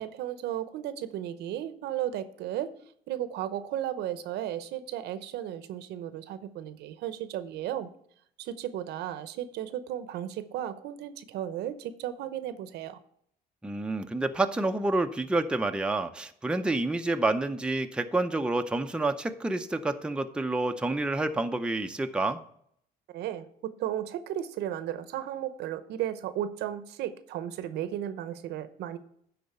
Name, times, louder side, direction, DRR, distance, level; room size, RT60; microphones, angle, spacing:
voice 1, 0.0-2.7 3.1-7.9 8.4-13.0 23.1-29.0, right 11 dB, 80° right, 13 dB, 0.8 m, -34 dB
voice 2, 13.6-22.4, right 2 dB, 5° right, 6 dB, 0.6 m, -28 dB
10.5 x 4.0 x 6.7 m, 0.67 s
cardioid pair, 110°, 17 cm